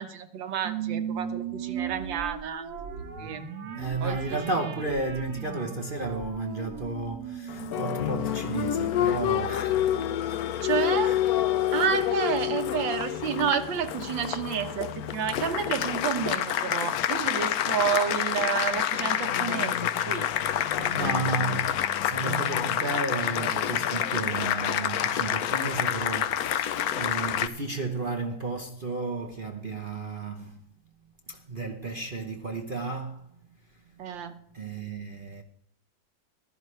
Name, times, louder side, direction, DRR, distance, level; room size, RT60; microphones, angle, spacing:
voice 1, 0.0-3.4 4.0-4.4 10.6-11.2 11.7-20.3 20.6-21.2 34.0-34.4, right 7 dB, 85° right, 1.9 m, -30 dB
sound 1, 0.6-9.4, right 7 dB, 65° right, 1.8 m, -37 dB
voice 2, 3.7-10.0 10.7-11.2 20.5-30.6 31.3-33.3 34.1-34.2 34.5-35.4, right 3 dB, 40° right, 0.8 m, -33 dB
Applause, 7.5-27.5, left 11 dB, 65° left, 1.0 m, -28 dB
15.0 x 12.5 x 3.2 m
omnidirectional pair, 2.0 m